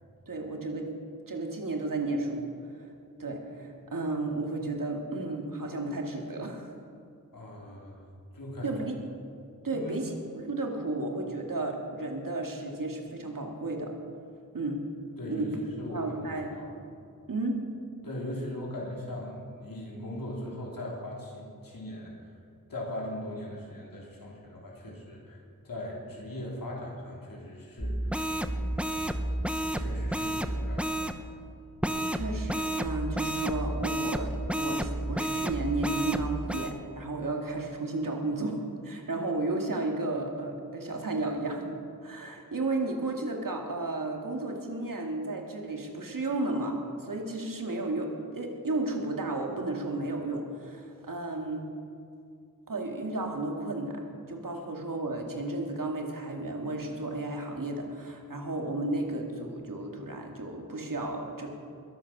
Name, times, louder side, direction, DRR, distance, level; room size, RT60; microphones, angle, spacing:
voice 1, 0.3-0.9 1.3-2.4 3.2-6.7 8.6-9.0 9.6-13.9 14.5-14.8 15.3-15.5 15.9-16.5 17.3-17.6 32.1-38.6 38.8-41.7 42.0-51.7 52.7-54.0 54.3-61.5, right 2 dB, 70° right, 2 dB, 2.2 m, -33 dB
voice 2, 7.3-8.0 8.3-8.7 9.7-10.0 15.2-15.5 15.8-16.7 18.0-22.1 22.7-25.4 25.6-28.2 28.5-29.5 29.8-31.3, left 1 dB, 75° left, -3 dB, 3.7 m, -40 dB
sound 1, 27.8-31.2 31.8-36.7, right 1 dB, 5° right, 0.8 m, -31 dB
21.0 x 8.4 x 6.0 m, 2.5 s
wide cardioid pair, 60°, 35 cm